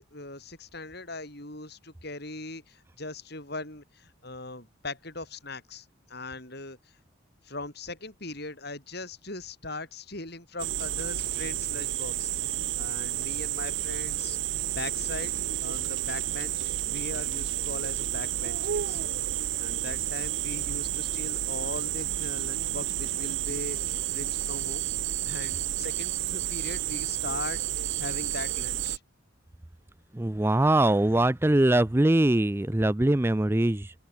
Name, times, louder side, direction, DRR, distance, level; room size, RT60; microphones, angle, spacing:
voice 1, 0.0-6.8 7.4-12.3 12.8-14.4 14.7-15.3 15.6-19.0 19.6-24.8 25.3-29.0, left 2 dB, 50° left, 6.8 m, -40 dB
sound 1, 10.6-29.0, right 13 dB, 60° right, 0.5 m, -31 dB
voice 2, 30.1-33.9, right 1 dB, 10° right, 0.4 m, -22 dB
open air
head